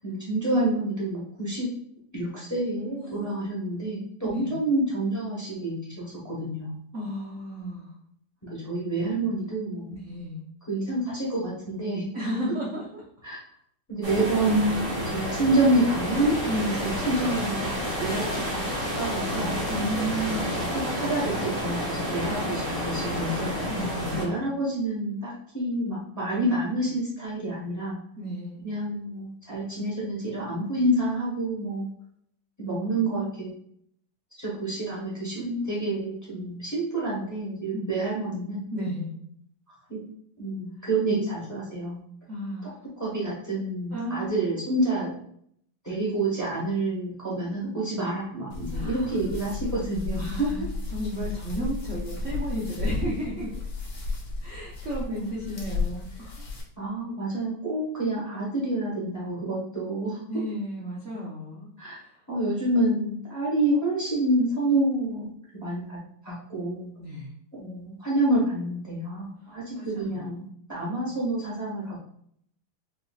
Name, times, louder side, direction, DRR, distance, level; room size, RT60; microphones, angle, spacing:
voice 1, 0.0-1.7 2.1-6.7 8.4-10.0 10.7-12.1 13.2-13.4 13.9-16.3 16.8-19.5 20.7-23.6 24.1-28.0 28.6-31.9 32.6-33.5 34.4-38.6 39.9-40.0 40.4-42.0 43.0-45.1 45.8-50.5 56.8-60.2 61.8-62.0 62.3-65.3 65.6-66.0 66.2-66.9 67.6-72.0, right 1 dB, 15° left, -7 dB, 0.7 m, -28 dB
voice 2, 3.0-3.4 4.3-4.5 6.9-7.9 9.9-10.4 12.1-13.0 16.5-16.8 19.7-20.5 23.7-24.2 28.2-28.6 37.7-37.9 38.7-39.1 42.3-42.7 43.9-44.4 48.7-49.1 50.2-53.5 54.4-56.5 60.3-61.7 62.0-62.2 67.0-67.3 69.7-70.3, equal, 85° right, -6 dB, 0.6 m, -33 dB
sound 1, 14.0-24.2, equal, 40° right, 0.5 m, -30 dB
sound 2, 48.5-56.6, left 3 dB, 55° left, 0.9 m, -33 dB
4.8 x 2.6 x 2.4 m, 0.66 s
omnidirectional pair, 2.3 m